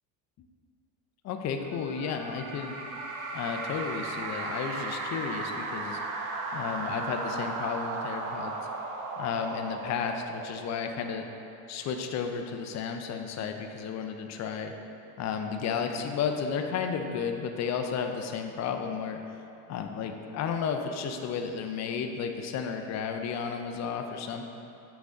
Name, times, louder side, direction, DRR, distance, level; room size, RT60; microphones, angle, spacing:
voice 1, 1.2-2.8 3.3-6.0 6.5-8.6 9.2-11.2 11.7-14.7 15.2-19.2 19.7-24.5, left 6 dB, 40° left, 5 dB, 0.6 m, -33 dB
sound 1, 1.7-11.4, right 3 dB, 45° right, 0.9 m, -36 dB
9.3 x 3.7 x 3.8 m, 2.8 s
supercardioid pair, 100°, 41 cm